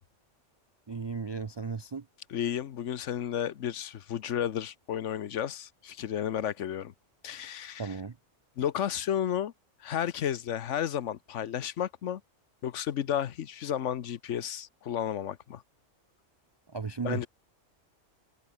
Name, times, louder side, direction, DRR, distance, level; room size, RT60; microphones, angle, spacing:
voice 1, 0.9-2.1 7.8-8.2 16.7-17.3, right 5 dB, 45° right, 0.3 m, -35 dB
voice 2, 2.3-6.9 7.2-7.9 8.6-9.5 9.8-12.2 12.6-15.6 17.0-17.3, left 10 dB, 75° left, 1.2 m, -32 dB
omnidirectional pair, 1.2 m